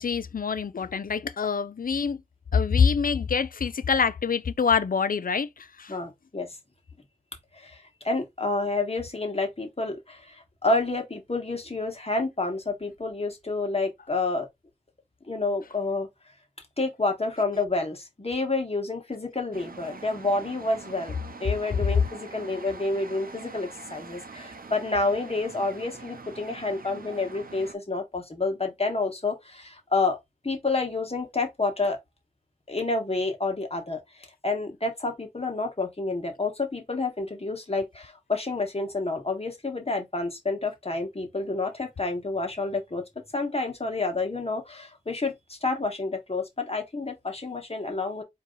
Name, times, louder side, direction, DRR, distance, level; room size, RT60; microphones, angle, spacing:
voice 1, 0.0-2.2 2.5-6.0, left 6 dB, 70° left, 0.4 m, -25 dB
voice 2, 5.9-6.6 7.5-14.5 15.3-16.1 16.8-21.1 21.4-30.2 30.4-32.0 32.7-43.0 43.3-48.2, left 3 dB, 45° left, 1.5 m, -29 dB
sound 1, 19.5-27.7, right 4 dB, 80° right, 0.6 m, -44 dB
4.5 x 2.9 x 3.9 m
wide cardioid pair, 50°, 15 cm